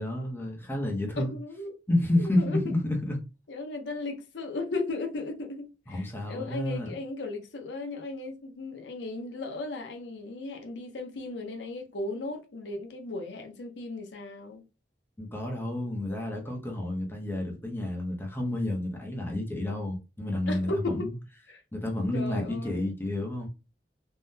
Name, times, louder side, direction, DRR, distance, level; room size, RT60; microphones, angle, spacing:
voice 1, 0.0-1.3 1.9-3.2 5.9-6.9 15.2-21.1 21.7-23.5, left 1 dB, 10° left, 0.7 m, -30 dB
voice 2, 1.2-1.7 2.2-2.6 3.5-14.6 20.5-21.1 21.5-21.6 22.1-22.9, left 2 dB, 70° left, 0.6 m, -36 dB
3.6 x 2.1 x 2.6 m
head